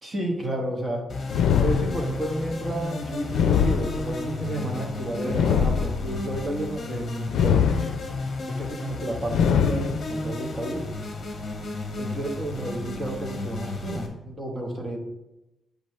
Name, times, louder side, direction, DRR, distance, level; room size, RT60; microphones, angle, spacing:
voice 1, 0.0-1.1 1.6-7.9 8.5-10.8 12.0-15.0, right 1 dB, 20° right, 1 dB, 1.1 m, -31 dB
sound 1, 1.1-14.1, left 2 dB, 35° left, 1.2 m, -33 dB
sound 2, 1.3-2.4 3.3-4.4 5.3-6.3 7.3-8.3 9.3-10.3, left 7 dB, 90° left, 0.4 m, -23 dB
8.9 x 5.2 x 3.2 m, 0.95 s
wide cardioid pair, 180°, 0 cm